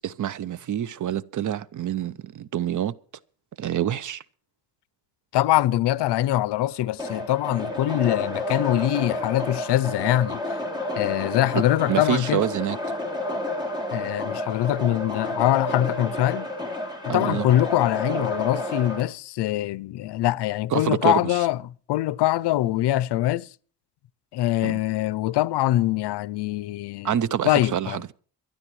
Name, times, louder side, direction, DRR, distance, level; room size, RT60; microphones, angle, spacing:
voice 1, 0.0-2.9 3.6-4.2 11.5-11.6 11.9-12.8 17.1-17.5 20.7-21.4 24.6-24.8 27.0-28.1, right 10 dB, 50° right, 0.5 m, -26 dB
voice 2, 5.3-10.4 11.0-12.4 13.9-16.5 17.0-21.6 21.9-23.5 24.3-27.2 27.4-28.0, left 14 dB, 85° left, 0.5 m, -23 dB
sound 1, 7.0-19.0, left 1 dB, 10° right, 2.8 m, -31 dB
23.5 x 12.0 x 3.1 m
cardioid pair, 140°, 40 cm